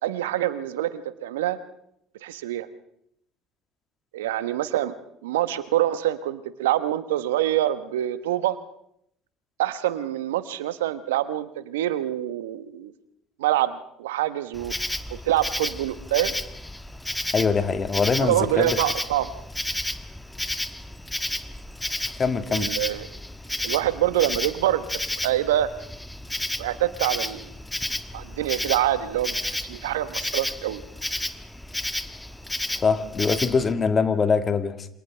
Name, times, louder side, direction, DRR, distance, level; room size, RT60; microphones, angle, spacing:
voice 1, 0.0-1.6 2.2-2.7 4.1-4.9 5.2-8.6 9.6-12.9 13.4-14.7 15.1-16.3 18.2-19.3 22.5-23.1 23.6-24.9 25.2-25.7 26.6-27.5 28.1-30.8, right 13 dB, 80° right, 13 dB, 1.1 m, -25 dB
Insect, 14.5-33.7, left 1 dB, 5° left, 1.3 m, -32 dB
voice 2, 17.3-18.8 22.2-22.7 32.8-34.9, left 5 dB, 35° left, 9 dB, 1.7 m, -23 dB
28.0 x 27.5 x 3.4 m, 0.74 s
hypercardioid pair, 65°, 0 cm